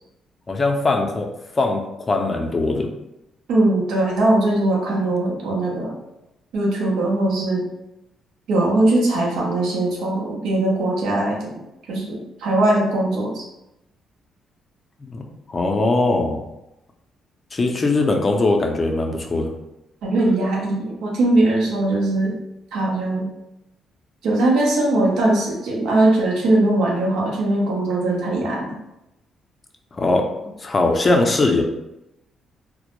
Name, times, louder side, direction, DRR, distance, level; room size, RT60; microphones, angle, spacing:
voice 1, 0.5-1.3 1.6-2.9 15.0-15.2 15.5-16.4 17.5-19.5 29.9-30.3 30.6-31.6, left 2 dB, 30° left, 2 dB, 0.4 m, -20 dB
voice 2, 3.5-6.0 6.5-7.7 8.5-11.5 11.9-13.4 20.0-22.4 22.7-23.3 24.2-28.8, right 2 dB, 80° right, -2 dB, 0.7 m, -20 dB
2.1 x 2.1 x 2.9 m, 0.89 s
cardioid pair, 90°, 0 cm